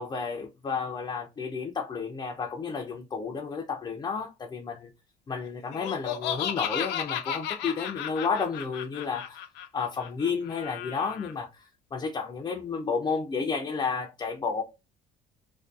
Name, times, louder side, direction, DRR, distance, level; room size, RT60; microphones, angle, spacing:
voice 1, 0.0-4.9 5.3-9.4 9.7-14.6, left 5 dB, 25° left, 0.4 m, -32 dB
Laughter, 5.7-11.3, left 9 dB, 85° left, 0.5 m, -34 dB
2.5 x 2.2 x 2.3 m
cardioid pair, 110°, 17 cm